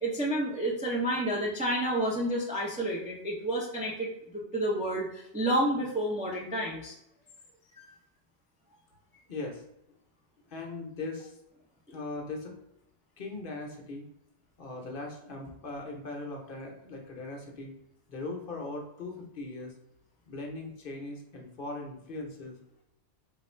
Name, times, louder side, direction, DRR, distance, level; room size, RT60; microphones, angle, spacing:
voice 1, 0.0-6.9 7.8-7.9 11.9-12.0, right 1 dB, 10° right, -3 dB, 0.4 m, -30 dB
voice 2, 9.3-9.6 10.5-11.4 11.9-12.5 13.2-14.1 14.6-17.7 18.1-19.7 20.3-22.6, left 2 dB, 55° left, 1 dB, 0.8 m, -39 dB
3.3 x 2.4 x 4.3 m, 0.83 s
omnidirectional pair, 1.2 m